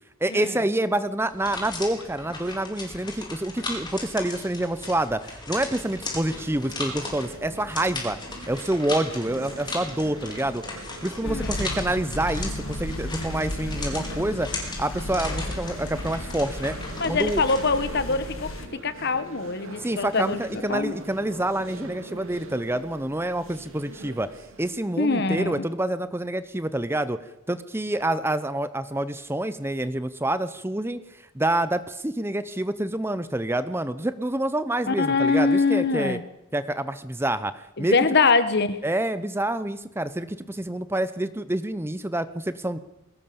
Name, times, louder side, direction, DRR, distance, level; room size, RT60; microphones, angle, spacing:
voice 1, 0.2-8.2 8.5-10.6 11.0-16.8 17.1-17.4 19.8-24.3 24.6-27.2 27.5-31.0 31.3-36.2 36.5-38.0 38.8-42.8, right 1 dB, 10° right, 13 dB, 0.8 m, -27 dB
sound 1, 1.3-17.9, left 3 dB, 20° left, 4.8 m, -37 dB
sound 2, 5.6-24.9, right 2 dB, 70° right, 2.8 m, -43 dB
sound 3, 11.2-18.7, left 1 dB, 75° left, 1.8 m, -34 dB
voice 2, 11.2-11.7 17.0-18.5 18.8-20.9 25.0-25.6 34.9-36.2 37.8-38.8, left 4 dB, 50° left, 12 dB, 1.4 m, -23 dB
22.0 x 18.5 x 7.0 m, 0.86 s
head